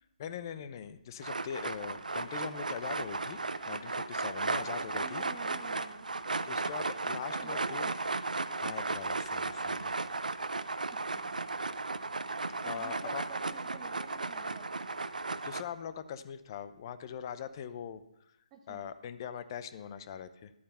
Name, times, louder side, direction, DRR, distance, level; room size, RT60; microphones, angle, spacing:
voice 1, 0.2-3.4 3.7-5.2 6.4-7.9 8.6-9.9 12.6-13.2 15.4-18.0 18.7-20.5, left 8 dB, 30° left, 12 dB, 0.7 m, -41 dB
sound 1, 1.2-15.6, right 3 dB, 80° right, 0.6 m, -35 dB
voice 2, 4.8-6.3 7.3-8.0 10.9-11.4 12.6-15.1 18.5-18.8, right 6 dB, 20° right, 2 dB, 0.9 m, -49 dB
11.5 x 8.6 x 5.4 m, 0.83 s
figure-of-eight pair, 150°, 4 cm